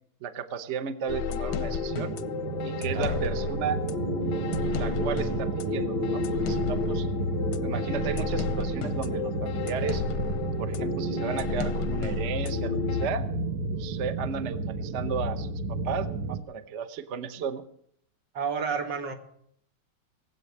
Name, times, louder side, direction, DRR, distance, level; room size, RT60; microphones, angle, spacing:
voice 1, 0.2-2.2 2.6-3.8 4.7-7.1 7.6-10.0 10.6-13.3 13.7-17.6, right 7 dB, 50° right, 9 dB, 1.1 m, -34 dB
sound 1, 1.1-13.1, left 7 dB, 85° left, 1.5 m, -32 dB
sound 2, 1.5-16.4, right 3 dB, 70° right, 1.5 m, -31 dB
voice 2, 2.9-3.2 18.3-19.1, right 6 dB, 85° right, 4 dB, 2.7 m, -30 dB
19.0 x 8.1 x 8.4 m, 0.69 s
omnidirectional pair, 1.9 m